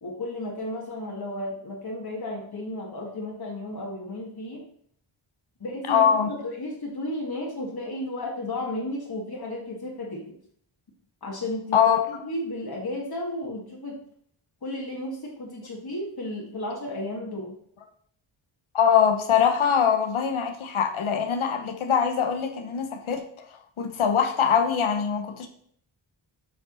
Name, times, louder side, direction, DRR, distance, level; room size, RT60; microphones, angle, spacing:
voice 1, 0.0-4.6 5.6-10.2 11.2-14.0 14.6-17.5, left 1 dB, 50° left, -3 dB, 2.1 m, -33 dB
voice 2, 5.9-6.3 11.7-12.3 18.7-23.2 23.8-25.5, left 7 dB, 85° left, 5 dB, 1.1 m, -23 dB
7.8 x 5.3 x 6.2 m, 0.65 s
wide cardioid pair, 90°, 47 cm